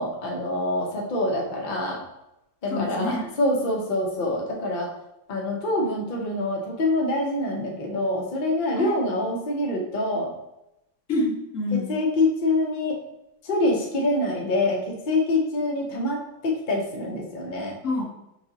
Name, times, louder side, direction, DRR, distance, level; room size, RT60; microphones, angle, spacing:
voice 1, 0.0-2.0 2.6-4.9 5.3-10.3 11.9-13.0 13.5-14.8 15.1-16.2 16.4-17.7, left 2 dB, 65° left, -1 dB, 0.4 m, -25 dB
voice 2, 2.7-3.3 8.7-8.9 11.1-12.0 17.8-18.0, left 2 dB, 50° left, -3 dB, 1.2 m, -27 dB
5.8 x 2.9 x 2.8 m, 0.87 s
omnidirectional pair, 2.1 m